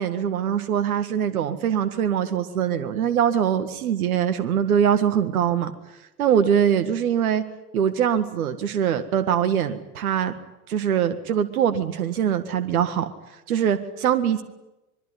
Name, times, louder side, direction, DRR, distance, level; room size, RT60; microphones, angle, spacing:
voice 1, 0.0-5.7 6.2-7.4 7.7-10.3 10.7-13.1 13.5-14.4, right 9 dB, 65° right, 9 dB, 1.9 m, -22 dB
24.5 x 22.5 x 9.7 m, 0.96 s
figure-of-eight pair, 85°, 46 cm